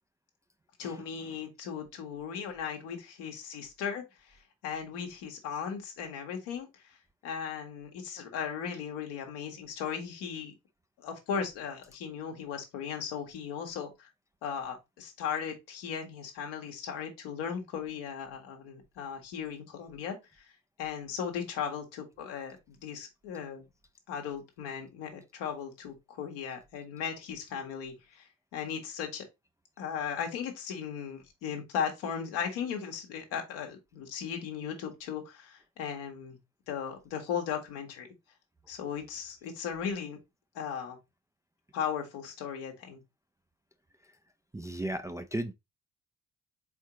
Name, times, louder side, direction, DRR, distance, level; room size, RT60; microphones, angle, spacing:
voice 1, 0.8-7.0 7.2-10.5 11.0-14.1 14.4-20.5 20.8-23.7 24.1-29.2 29.8-36.4 36.7-38.1 38.7-40.2 40.5-41.0 41.7-43.0, left 7 dB, 80° left, 1.3 m, -37 dB
voice 2, 44.5-45.5, right 1 dB, 10° right, 0.3 m, -35 dB
4.4 x 3.7 x 2.8 m
hypercardioid pair, 55°, 42 cm